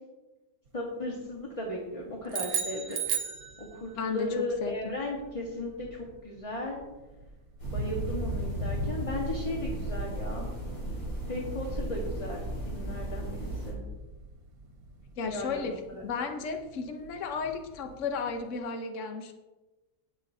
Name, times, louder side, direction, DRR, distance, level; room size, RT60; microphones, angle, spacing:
voice 1, 0.7-3.0 3.7-6.8 7.7-10.5 11.3-13.8 15.2-16.0, left 1 dB, 25° left, -2 dB, 1.5 m, -36 dB
sound 1, 0.7-18.5, right 1 dB, 75° right, 1.5 m, -42 dB
sound 2, 2.3-4.1, right 7 dB, 50° right, 1.0 m, -33 dB
voice 2, 4.0-4.9 15.2-15.7 16.0-19.3, left 5 dB, 60° left, 5 dB, 1.2 m, -34 dB
sound 3, 7.6-13.7, right 1 dB, 80° left, 4.3 m, -36 dB
18.0 x 7.4 x 2.7 m, 1.1 s
omnidirectional pair, 1.5 m